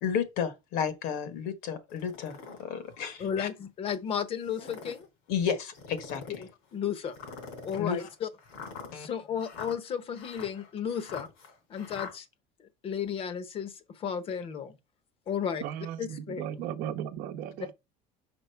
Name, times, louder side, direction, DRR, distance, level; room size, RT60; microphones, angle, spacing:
voice 1, 0.0-3.5 5.3-6.4 7.8-8.1 8.9-9.1, left 7 dB, 70° left, 1.4 m, -32 dB
sound 1, 1.9-2.6 3.2-3.3 4.4-5.1 5.7-6.5 7.1-12.1, left 5 dB, 90° left, 3.3 m, -44 dB
voice 2, 3.2-5.1 6.4-7.2 7.6-8.3 8.9-11.3 11.7-12.3 12.6-14.8 15.3-15.6 16.0-16.5, left 8 dB, 35° left, 0.9 m, -34 dB
voice 3, 15.6-17.7, right 10 dB, 65° right, 0.8 m, -36 dB
5.6 x 5.2 x 4.5 m
cardioid pair, 150°, 16 cm